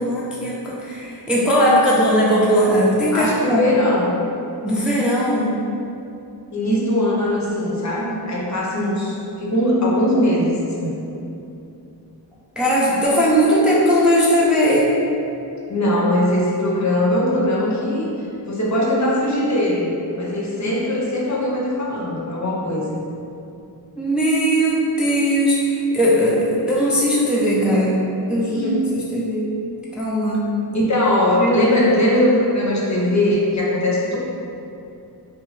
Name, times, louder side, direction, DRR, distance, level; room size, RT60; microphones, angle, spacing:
voice 1, 0.0-3.7 4.6-5.6 12.6-14.9 24.0-28.0 28.3-29.4 29.9-30.5 31.4-31.8, equal, 5° right, -6 dB, 0.4 m, -18 dB
voice 2, 3.1-4.2 6.5-10.9 15.7-18.1 18.5-23.0 28.4-28.9 30.7-34.2, left 1 dB, 45° left, -5 dB, 0.6 m, -20 dB
2.6 x 2.2 x 3.0 m, 2.7 s
wide cardioid pair, 55°, 39 cm